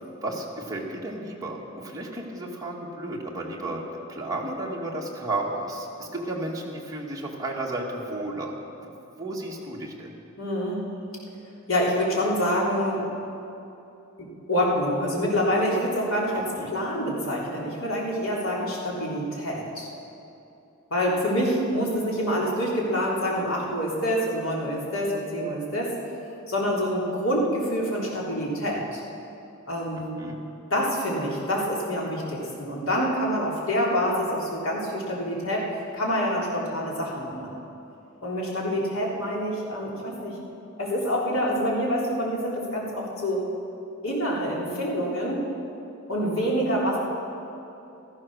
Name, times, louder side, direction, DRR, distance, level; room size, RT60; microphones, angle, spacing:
voice 1, 0.2-3.8 4.1-8.5 8.8-10.1 16.5-16.7 30.2-30.4, right 2 dB, 20° right, -2 dB, 2.0 m, -33 dB
voice 2, 10.4-10.8 11.7-13.1 14.2-19.9 20.9-25.9 26.5-29.0 29.7-30.2 30.7-35.7 35.9-37.6 38.2-40.3 40.8-43.4 44.0-45.4 46.1-47.0, equal, 85° left, -4 dB, 3.5 m, -26 dB
15.0 x 14.0 x 6.5 m, 2.9 s
head